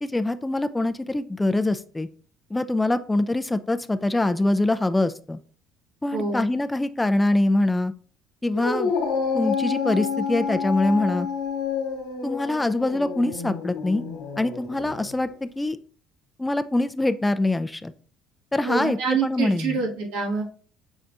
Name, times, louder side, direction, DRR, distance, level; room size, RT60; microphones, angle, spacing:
voice 1, 0.0-2.1 2.5-5.4 6.0-7.9 8.4-8.9 9.3-11.3 12.2-14.0 14.4-15.8 16.4-17.9 18.5-19.8, left 2 dB, 15° left, 11 dB, 0.3 m, -24 dB
voice 2, 6.1-6.4 18.6-20.4, right 5 dB, 80° right, 0 dB, 1.2 m, -26 dB
Dog, 8.5-15.2, left 5 dB, 80° left, 0.8 m, -29 dB
5.3 x 3.3 x 2.5 m, 0.43 s
supercardioid pair, 75°, 0 cm